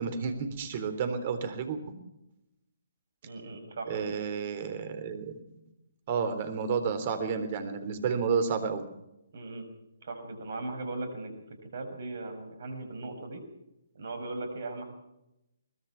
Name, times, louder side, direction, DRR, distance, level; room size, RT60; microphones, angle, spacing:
voice 1, 0.0-1.9 3.9-5.3 6.1-8.9, right 6 dB, 40° right, 10 dB, 3.7 m, -31 dB
voice 2, 3.2-4.1 9.3-9.6 10.0-11.3 11.6-13.4 13.9-15.0, right 2 dB, 55° right, 7 dB, 6.2 m, -38 dB
23.0 x 20.0 x 5.9 m, 0.88 s
figure-of-eight pair, 135°, 0 cm